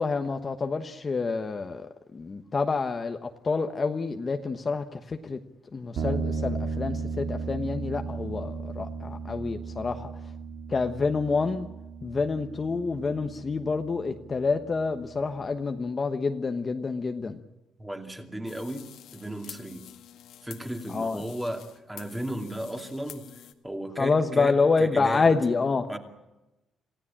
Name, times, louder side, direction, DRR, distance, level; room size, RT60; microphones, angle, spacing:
voice 1, 0.0-1.9 2.1-5.4 5.7-10.1 10.7-11.7 12.0-17.4 20.9-21.2 24.0-25.9, left 4 dB, 25° left, 6 dB, 1.2 m, -27 dB
sound 1, 6.0-15.4, right 4 dB, 65° right, 2.2 m, -36 dB
voice 2, 17.8-19.8 20.4-23.3 23.6-25.3 25.9-26.0, right 1 dB, 5° right, 5 dB, 2.5 m, -35 dB
sound 2, 18.5-23.5, left 11 dB, 75° left, 1.9 m, -48 dB
27.5 x 17.0 x 8.8 m, 0.99 s
cardioid pair, 150°, 0 cm